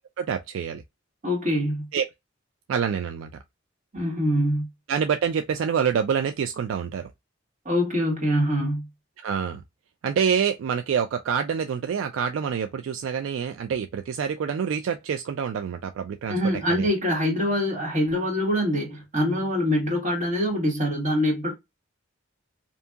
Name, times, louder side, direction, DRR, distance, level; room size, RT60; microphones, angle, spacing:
voice 1, 0.2-0.8 1.9-2.1 2.7-3.3 4.9-7.1 9.2-9.6 10.0-16.4 16.7-16.9, right 7 dB, 70° right, 0.3 m, -26 dB
voice 2, 1.2-1.9 3.9-4.7 7.6-8.9 16.3-21.6, equal, 40° right, 1.5 m, -24 dB
2.7 x 2.6 x 2.3 m
head